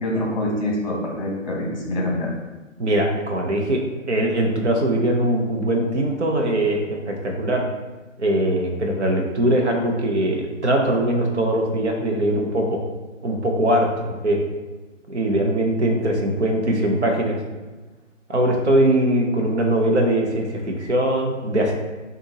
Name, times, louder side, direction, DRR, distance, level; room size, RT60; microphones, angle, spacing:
voice 1, 0.0-2.3, left 1 dB, 35° left, -1 dB, 1.1 m, -25 dB
voice 2, 2.8-3.8 4.1-7.6 8.2-12.8 13.2-14.5 15.1-17.4 18.3-21.7, right 1 dB, 60° right, 1 dB, 1.0 m, -21 dB
6.4 x 2.7 x 2.8 m, 1.2 s
hypercardioid pair, 175°, 38 cm